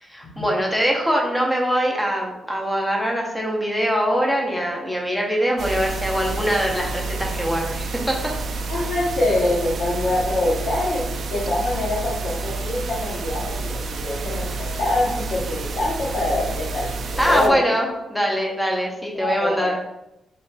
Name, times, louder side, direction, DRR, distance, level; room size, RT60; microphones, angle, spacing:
voice 1, 0.0-8.3 17.2-19.7, equal, 5° left, -1 dB, 0.7 m, -23 dB
sound 1, 5.6-17.5, right 3 dB, 60° right, 0.3 m, -29 dB
voice 2, 8.7-11.0 11.3-17.6 19.1-19.7, left 2 dB, 70° left, -6 dB, 0.9 m, -24 dB
4.1 x 3.1 x 2.3 m, 0.90 s
cardioid pair, 125°, 0 cm